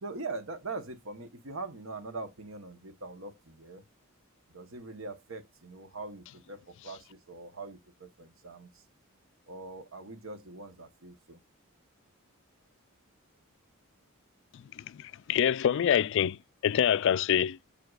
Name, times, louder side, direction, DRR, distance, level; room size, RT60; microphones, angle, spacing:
voice 1, 0.0-3.8 4.5-8.8 9.5-11.4, right 3 dB, 65° right, 1.2 m, -42 dB
voice 2, 15.3-16.4 16.6-17.6, left 9 dB, 60° left, 0.3 m, -25 dB
7.8 x 6.8 x 2.4 m
head